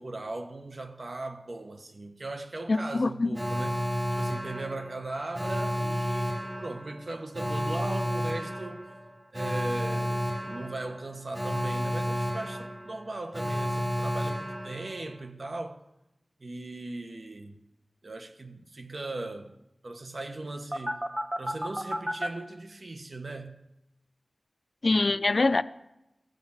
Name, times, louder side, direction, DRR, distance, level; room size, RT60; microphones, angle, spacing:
voice 1, 0.0-8.9 9.3-15.8 16.4-17.6 18.0-19.5 19.8-21.0 21.4-23.6, right 2 dB, 70° right, 1.2 m, -38 dB
voice 2, 2.7-3.4 24.8-25.6, left 3 dB, 65° left, 0.4 m, -24 dB
Alarm, 3.3-15.3 20.7-22.3, equal, 15° right, 1.4 m, -32 dB
14.5 x 8.0 x 7.2 m
wide cardioid pair, 55°, 0 cm